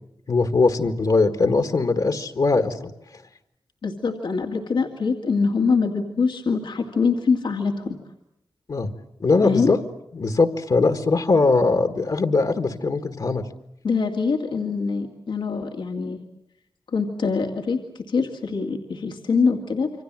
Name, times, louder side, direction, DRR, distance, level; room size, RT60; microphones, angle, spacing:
voice 1, 0.3-2.9 8.7-8.9 9.2-9.8 10.1-13.4, left 3 dB, 60° left, 7 dB, 1.7 m, -21 dB
voice 2, 3.8-8.0 9.4-9.7 13.8-16.2 16.9-20.0, left 4 dB, 90° left, 2 dB, 2.3 m, -24 dB
27.5 x 24.5 x 7.6 m, 0.80 s
cardioid pair, 65°, 8 cm